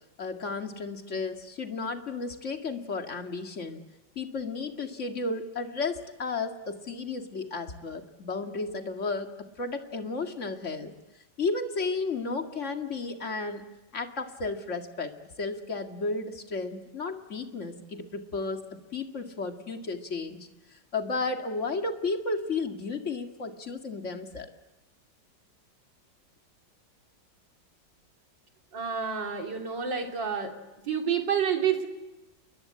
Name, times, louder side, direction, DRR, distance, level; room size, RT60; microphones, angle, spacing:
voice 1, 0.2-3.8 4.2-9.3 9.6-10.9 11.4-13.7 13.9-15.1 15.4-18.7 18.9-24.5, left 3 dB, 40° left, 5 dB, 2.3 m, -33 dB
voice 2, 28.7-30.6 30.8-31.9, right 7 dB, 75° right, 3 dB, 3.5 m, -29 dB
29.5 x 22.0 x 8.7 m, 1.0 s
omnidirectional pair, 2.0 m